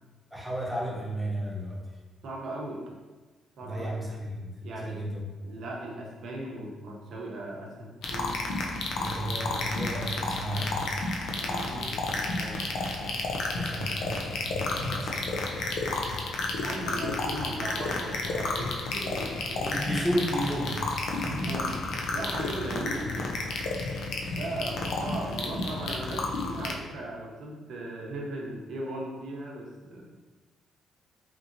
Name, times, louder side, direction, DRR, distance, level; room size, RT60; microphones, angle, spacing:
voice 1, 0.3-1.8 3.6-5.2 9.0-10.8 13.5-15.5 19.6-21.8 24.1-24.5, equal, ahead, -5 dB, 0.8 m, -33 dB
voice 2, 2.2-2.8 3.6-3.9 4.6-5.0 5.4-8.3 11.4-12.6 16.6-19.7 21.2-21.7 22.1-23.3 24.3-30.1, right 1 dB, 70° right, -2 dB, 0.7 m, -38 dB
sound 1, 8.0-26.7, left 3 dB, 75° left, 0.4 m, -31 dB
2.9 x 2.6 x 2.6 m, 1.2 s
cardioid pair, 90°, 0 cm